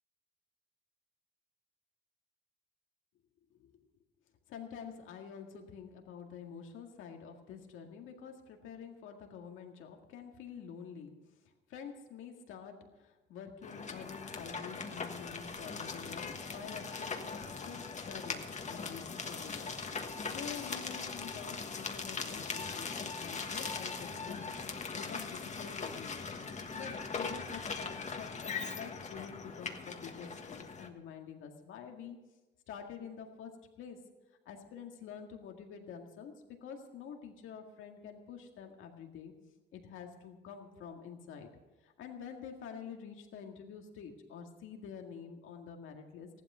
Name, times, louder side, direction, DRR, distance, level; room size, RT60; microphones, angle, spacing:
voice 1, 4.5-11.1 11.7-24.4 24.9-26.3 26.7-32.3 32.7-34.0 34.5-36.3 36.6-39.3 39.7-41.5 41.8-46.3, left 7 dB, 85° left, 3 dB, 2.0 m, -48 dB
sound 1, 13.6-30.9, left 5 dB, 35° left, 1.4 m, -40 dB
15.0 x 11.5 x 5.6 m, 1.1 s
cardioid pair, 90°, 20 cm